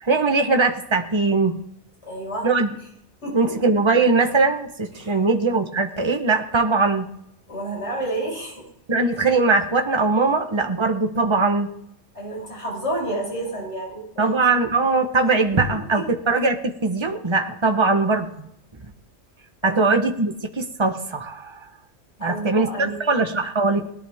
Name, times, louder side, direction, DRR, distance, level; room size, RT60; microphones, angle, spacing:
voice 1, 0.0-1.6 2.4-2.7 3.3-7.1 8.9-11.7 14.2-18.5 19.6-21.7 22.2-23.9, right 3 dB, 25° right, 5 dB, 1.2 m, -21 dB
voice 2, 2.0-2.5 3.2-3.5 5.0-5.2 7.5-8.6 12.1-14.3 15.9-16.0 19.6-19.8 22.2-23.0, right 1 dB, 85° left, -3 dB, 6.0 m, -30 dB
20.5 x 11.0 x 3.6 m, 0.74 s
omnidirectional pair, 1.1 m